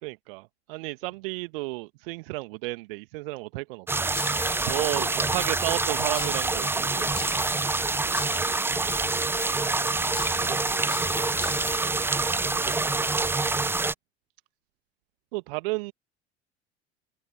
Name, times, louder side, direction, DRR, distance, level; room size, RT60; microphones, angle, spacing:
voice 1, 0.0-4.1 4.6-7.3 15.3-15.9, right 24 dB, 55° right, 1.4 m, -33 dB
sound 1, 3.9-13.9, right 3 dB, 5° right, 0.6 m, -26 dB
sound 2, 4.1-4.8 5.4-5.8 6.1-6.8 7.1-7.8 8.1-9.8 10.1-12.0, left 9 dB, 75° left, 2.5 m, -41 dB
voice 2, 5.0-5.4 8.0-8.3 10.1-12.0 12.3-13.5, right 5 dB, 80° right, 3.9 m, -45 dB
figure-of-eight pair, 70°, 33 cm